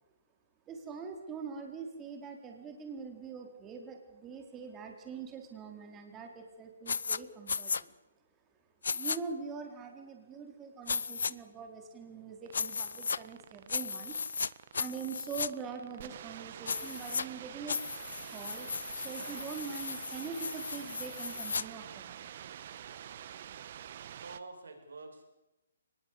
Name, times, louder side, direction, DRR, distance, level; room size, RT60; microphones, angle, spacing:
voice 1, 0.7-7.9 8.9-17.8 18.1-22.2, right 5 dB, 15° right, 3 dB, 4.0 m, -43 dB
sound 1, 6.9-7.2 7.5-7.8 8.8-9.2 10.9-11.3 12.5-13.2 13.7-14.5 14.7-15.5 16.7-17.2 17.7-21.6, left 5 dB, 75° left, 0.8 m, -35 dB
sound 2, 12.5-24.4, right 10 dB, 45° right, 1.2 m, -47 dB
voice 2, 24.0-25.2, right 3 dB, 80° right, 5 dB, 7.2 m, -48 dB
24.0 x 20.0 x 8.5 m, 0.95 s
hypercardioid pair, 150°, 0 cm